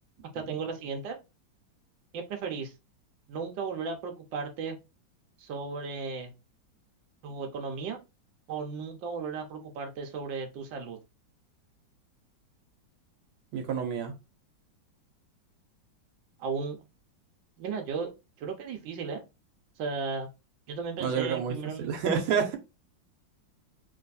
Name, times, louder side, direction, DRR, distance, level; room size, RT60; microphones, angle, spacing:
voice 1, 0.3-1.2 2.1-2.7 3.3-4.8 5.4-6.3 7.2-8.0 8.5-11.0 16.4-16.8 17.6-18.1 18.4-19.2 19.8-20.3 20.7-21.9, right 5 dB, 70° right, 1.5 m, -35 dB
voice 2, 13.5-14.1 21.0-22.6, right 6 dB, 90° right, 1.7 m, -29 dB
3.3 x 3.0 x 4.0 m
omnidirectional pair, 2.2 m